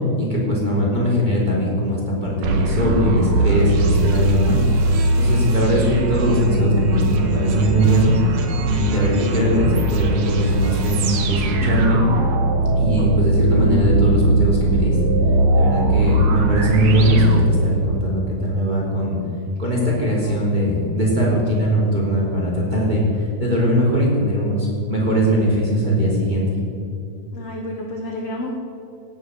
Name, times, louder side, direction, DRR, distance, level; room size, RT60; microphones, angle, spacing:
voice 1, 0.2-4.6 5.1-8.2 8.6-12.1 12.8-15.0 15.5-19.2 19.6-26.6, equal, 10° right, -4 dB, 3.3 m, -20 dB
sound 1, 2.4-18.0, right 2 dB, 65° right, 2.8 m, -20 dB
voice 2, 19.9-20.4 27.3-28.5, left 1 dB, 55° left, 0 dB, 1.9 m, -31 dB
17.0 x 8.5 x 7.9 m, 2.6 s
omnidirectional pair, 4.5 m